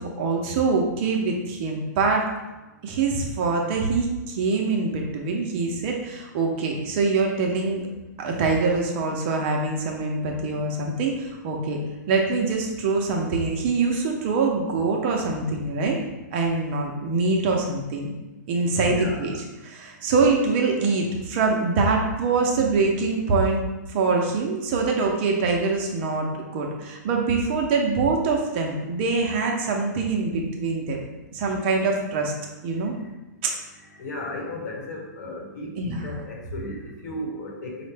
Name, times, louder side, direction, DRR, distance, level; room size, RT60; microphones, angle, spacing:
voice 1, 0.0-2.3 2.8-7.8 8.2-11.8 12.1-16.0 16.3-18.1 18.5-23.6 23.9-26.3 26.5-31.0 31.3-32.3 32.6-32.9 33.4-33.5 35.8-36.2, right 4 dB, 35° right, 1 dB, 0.5 m, -24 dB
voice 2, 18.8-19.2 34.0-37.8, left 1 dB, 60° left, -1 dB, 1.1 m, -35 dB
4.7 x 2.1 x 3.3 m, 1.1 s
hypercardioid pair, 155°, 10 cm